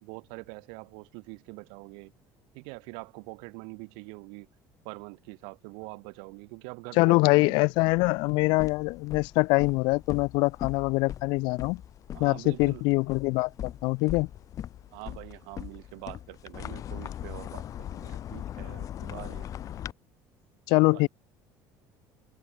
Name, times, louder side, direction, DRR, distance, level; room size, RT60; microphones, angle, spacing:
voice 1, 0.0-2.1 2.5-4.5 4.8-7.6 12.1-12.8 14.9-19.5 20.9-21.0, right 39 dB, 90° right, 2.0 m, -44 dB
voice 2, 7.0-11.8 12.2-14.3 20.7-21.1, left 26 dB, 75° left, 0.4 m, -24 dB
sound 1, 7.7-19.9, left 11 dB, 45° left, 4.1 m, -40 dB
cardioid pair, 140°, 8 cm